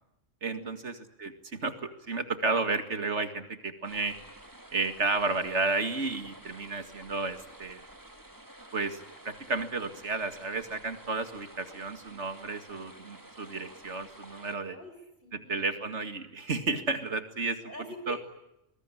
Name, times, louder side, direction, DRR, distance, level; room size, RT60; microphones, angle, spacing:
voice 1, 0.4-0.9 1.2-4.1 4.7-7.8 8.7-9.0 9.2-14.8 15.5-17.6 18.1-18.2, right 3 dB, 65° right, 8 dB, 2.4 m, -32 dB
sound 1, 3.8-14.6, right 1 dB, 15° right, 2.3 m, -51 dB
voice 2, 14.6-15.9 17.6-18.2, left 1 dB, 45° left, 6 dB, 5.7 m, -46 dB
25.0 x 21.5 x 9.9 m, 0.87 s
omnidirectional pair, 1.3 m